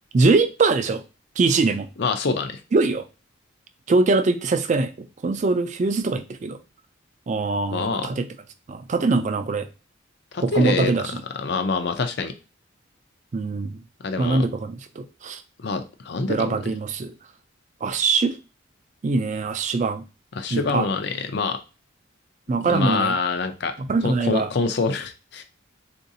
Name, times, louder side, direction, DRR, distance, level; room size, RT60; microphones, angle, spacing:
voice 1, 0.1-1.0 1.4-1.9 2.7-3.0 3.9-4.9 5.2-6.6 7.3-8.3 8.7-9.7 10.4-11.2 13.3-13.8 14.2-15.4 16.3-17.1 17.8-18.4 19.0-20.0 20.5-20.9 22.5-23.2 23.8-24.5, right 3 dB, 35° right, 0.3 m, -22 dB
voice 2, 2.0-2.6 7.7-8.1 10.3-10.9 11.4-12.3 14.0-14.5 15.6-16.5 20.3-21.6 22.5-23.7 24.0-25.4, left 4 dB, 55° left, 0.4 m, -25 dB
3.9 x 2.5 x 2.6 m
head